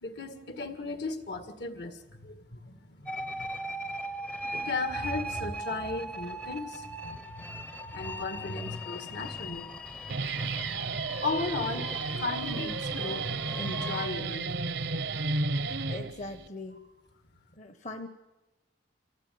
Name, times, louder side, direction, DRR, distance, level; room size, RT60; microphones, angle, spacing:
voice 1, 0.0-3.5 3.7-4.1 4.5-10.8 11.2-11.9 12.2-13.3 13.6-15.4, left 3 dB, 65° left, 10 dB, 2.0 m, -37 dB
sound 1, 3.1-14.1, right 1 dB, 5° left, 0.7 m, -39 dB
Guitar, 9.9-16.5, right 3 dB, 70° right, 0.9 m, -33 dB
voice 2, 15.9-16.8 17.6-18.1, left 2 dB, 40° left, 8 dB, 1.2 m, -40 dB
26.0 x 16.5 x 9.4 m, 1.1 s
head